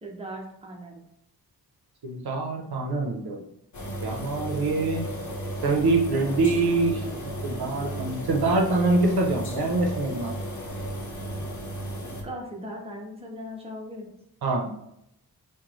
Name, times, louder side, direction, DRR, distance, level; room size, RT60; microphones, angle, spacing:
voice 1, 0.0-1.0 12.2-14.1, equal, 15° right, -1 dB, 0.8 m, -38 dB
voice 2, 2.0-3.4 4.0-5.1 5.6-7.0 7.4-10.3 14.4-14.7, right 3 dB, 70° right, 1 dB, 0.7 m, -25 dB
sound 1, 3.7-12.2, right 1 dB, 50° left, 0.8 m, -34 dB
3.0 x 2.1 x 3.8 m, 0.77 s
wide cardioid pair, 65°, 39 cm